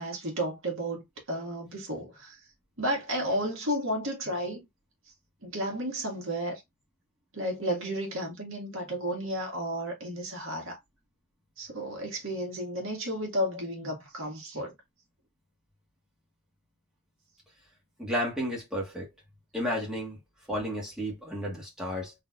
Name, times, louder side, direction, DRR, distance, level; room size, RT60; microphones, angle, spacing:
voice 1, 0.0-2.4 2.8-4.6 5.4-6.6 7.3-10.8 11.6-14.7, equal, 60° right, 1.9 m, -32 dB
voice 2, 18.0-19.1 19.5-20.2 20.5-22.1, equal, 5° right, 1.8 m, -32 dB
4.0 x 3.4 x 2.5 m
head